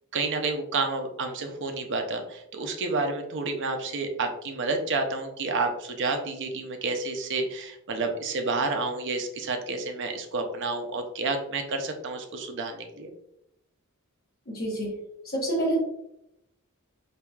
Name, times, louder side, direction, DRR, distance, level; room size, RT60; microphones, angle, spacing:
voice 1, 0.1-13.1, right 3 dB, 55° right, 5 dB, 0.5 m, -30 dB
voice 2, 14.5-15.0 15.2-15.8, right 1 dB, 45° left, -4 dB, 0.9 m, -27 dB
4.5 x 2.7 x 2.3 m, 0.80 s
head